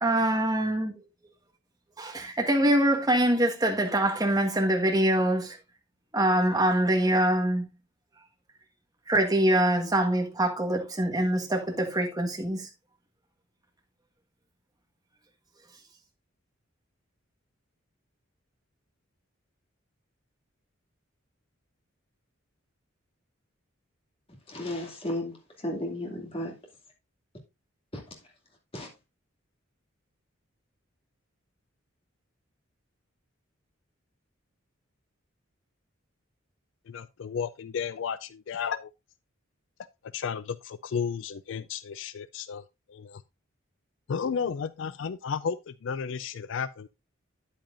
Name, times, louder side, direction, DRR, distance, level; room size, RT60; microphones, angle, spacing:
voice 1, 0.0-0.9 2.0-5.6 6.1-7.7 9.1-12.7, right 1 dB, 20° right, 1.5 m, -24 dB
voice 2, 24.5-26.6 27.9-28.0 28.7-28.9, left 1 dB, 30° left, 2.4 m, -34 dB
voice 3, 36.9-38.9 40.1-42.6 42.9-43.2 44.1-46.9, left 6 dB, 65° left, 0.3 m, -33 dB
9.2 x 8.7 x 2.5 m
head